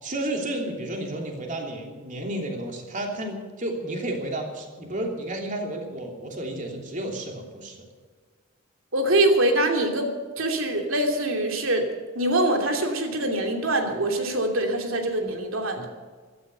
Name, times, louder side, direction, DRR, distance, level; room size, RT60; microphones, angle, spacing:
voice 1, 0.0-7.8, right 1 dB, 35° right, 1 dB, 3.1 m, -32 dB
voice 2, 8.9-10.1 10.4-11.9 12.1-15.9, right 1 dB, 70° right, 3 dB, 2.8 m, -24 dB
15.5 x 13.0 x 6.8 m, 1.5 s
head